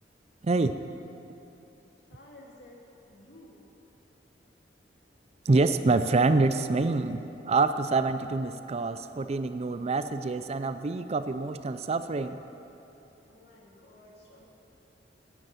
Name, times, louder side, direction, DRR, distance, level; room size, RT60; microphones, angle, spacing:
voice 1, 0.4-0.8 5.5-12.4, right 3 dB, 35° right, 11 dB, 0.4 m, -26 dB
voice 2, 2.1-2.8 3.1-3.6 13.2-14.5, left 1 dB, 65° left, -3 dB, 2.6 m, -53 dB
9.7 x 9.4 x 9.0 m, 2.9 s
head